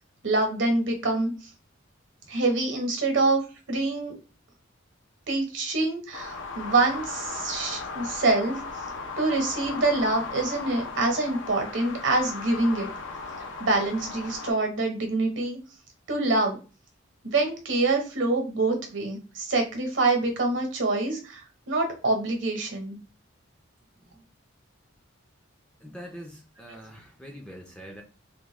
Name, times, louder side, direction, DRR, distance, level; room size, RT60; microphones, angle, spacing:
voice 1, 0.2-1.3 2.3-3.4 3.7-4.2 5.3-8.6 9.2-12.9 13.6-15.6 16.1-16.6 17.2-23.0, right 2 dB, 65° right, 1.0 m, -25 dB
sound 1, 6.1-14.5, left 4 dB, 65° left, 0.6 m, -37 dB
voice 2, 24.0-24.3 25.8-28.0, equal, 5° left, 0.5 m, -44 dB
3.5 x 2.2 x 3.1 m
head